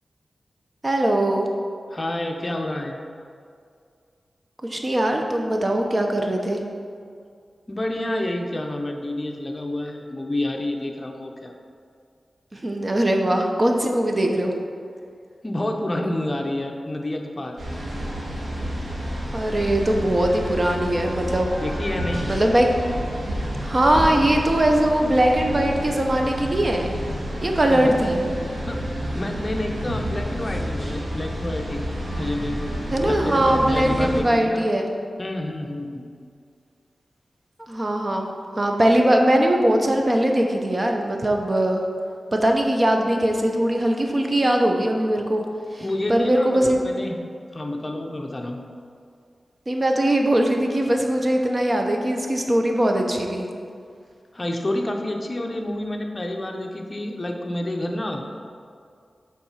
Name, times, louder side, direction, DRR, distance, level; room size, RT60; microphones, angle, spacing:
voice 1, 0.8-1.5 4.7-6.6 12.5-14.6 19.3-21.6 22.2-22.7 23.4-26.9 27.4-28.2 32.9-34.9 37.7-38.3 38.6-41.8 42.3-45.4 45.7-45.8 46.1-46.8 49.7-53.5, right 1 dB, 35° right, 2 dB, 0.9 m, -21 dB
voice 2, 1.9-3.0 7.7-11.5 15.4-17.6 21.6-22.3 27.7-27.9 28.6-31.8 32.2-32.6 33.0-34.7 35.2-36.0 45.8-47.2 47.5-48.6 54.3-58.2, left 1 dB, 30° left, 2 dB, 0.8 m, -29 dB
sound 1, 17.6-34.2, equal, 70° right, 1.8 m, -29 dB
7.6 x 4.2 x 5.8 m, 2.3 s
wide cardioid pair, 75°, 0 cm